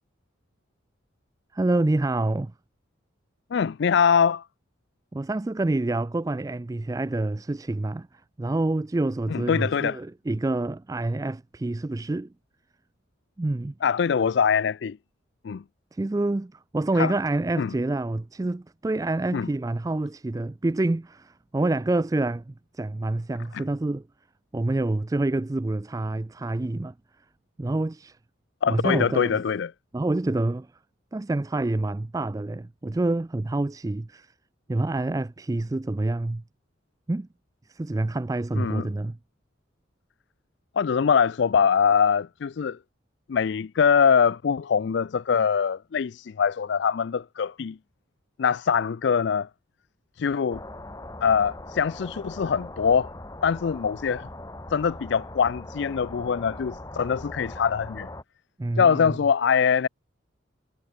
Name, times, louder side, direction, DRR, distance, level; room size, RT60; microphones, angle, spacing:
voice 1, 1.5-2.5 5.1-12.3 13.4-13.7 15.9-24.1 24.5-26.9 27.6-28.2 28.7-29.4 29.9-30.7 31.1-34.3 34.7-36.4 37.1-37.3 37.7-39.2 58.6-59.2, right 2 dB, 15° right, 0.3 m, -27 dB
voice 2, 3.5-4.4 9.3-10.0 13.8-15.0 15.4-15.6 17.0-17.1 17.6-17.7 19.3-19.5 28.6-29.7 38.5-38.9 40.8-42.8 43.3-47.8 48.4-49.5 50.2-50.6 51.2-53.1 53.4-54.3 54.7-58.1 58.8-59.9, left 6 dB, 60° left, 0.4 m, -23 dB
sound 1, 50.5-58.2, left 1 dB, 15° left, 1.6 m, -40 dB
head